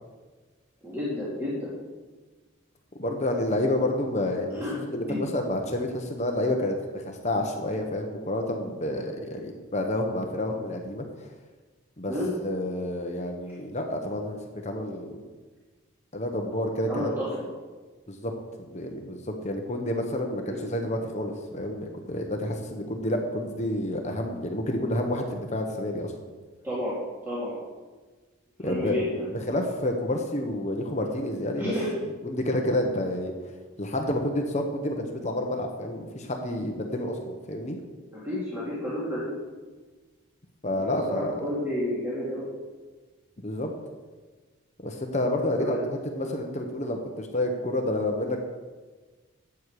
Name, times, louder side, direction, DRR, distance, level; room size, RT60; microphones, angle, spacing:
voice 1, 0.8-1.7 4.5-4.7 5.1-5.2 12.1-12.3 16.9-17.5 20.5-20.7 26.6-27.0 27.2-27.6 28.6-29.3 31.6-31.9 38.1-39.3 40.7-42.5 45.6-45.8 46.2-46.3, left 1 dB, 10° right, -9 dB, 2.5 m, -31 dB
voice 2, 3.0-11.0 12.0-12.1 12.4-15.2 16.1-17.2 18.1-18.3 18.7-26.1 28.6-31.7 32.2-33.3 33.8-37.8 40.6-41.4 43.4-43.7 44.8-45.8 46.1-48.4, left 1 dB, 35° left, 3 dB, 1.1 m, -29 dB
12.5 x 8.3 x 4.8 m, 1.3 s
head